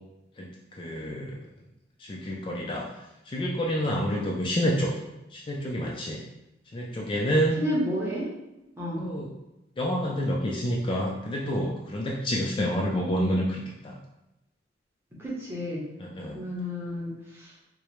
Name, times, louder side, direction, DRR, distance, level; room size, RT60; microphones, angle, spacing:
voice 1, 0.4-1.4 2.0-2.9 3.3-4.9 5.3-6.2 6.7-7.6 9.0-9.3 9.8-14.0 16.0-16.5, equal, 30° left, -2 dB, 0.4 m, -28 dB
voice 2, 7.6-8.3 8.8-9.0 15.2-15.8 16.3-17.5, equal, 15° right, -5 dB, 0.9 m, -31 dB
4.7 x 2.1 x 3.0 m, 0.94 s
head